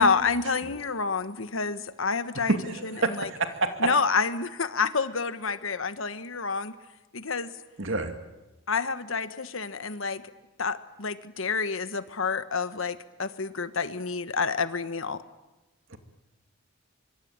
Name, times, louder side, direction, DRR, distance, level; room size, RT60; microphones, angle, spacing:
voice 1, 0.0-2.6 2.8-3.3 3.8-6.7 7.1-7.5 8.7-10.2 10.6-15.2, left 5 dB, 75° left, 12 dB, 1.3 m, -28 dB
voice 2, 2.5-3.9 7.8-8.1 15.9-16.0, right 2 dB, 70° right, 7 dB, 2.4 m, -28 dB
25.0 x 24.0 x 8.9 m, 1.1 s
head